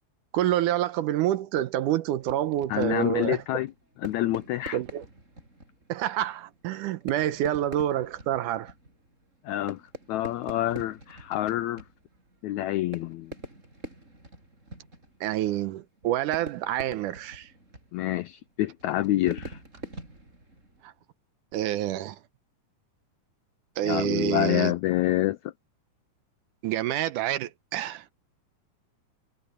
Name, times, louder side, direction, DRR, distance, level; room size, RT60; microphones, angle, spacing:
voice 1, 0.3-3.4 4.7-5.0 5.9-8.7 15.2-17.5 20.8-20.9 21.5-22.2 23.8-24.7 26.6-28.1, right 13 dB, 80° right, 2.2 m, -27 dB
Fireworks, 2.2-21.0, right 1 dB, 20° right, 6.6 m, -46 dB
voice 2, 2.7-3.7 4.0-4.8 9.4-9.8 10.1-11.8 12.4-13.4 17.9-19.6 23.8-25.4, left 15 dB, 80° left, 1.6 m, -27 dB
omnidirectional pair, 3.9 m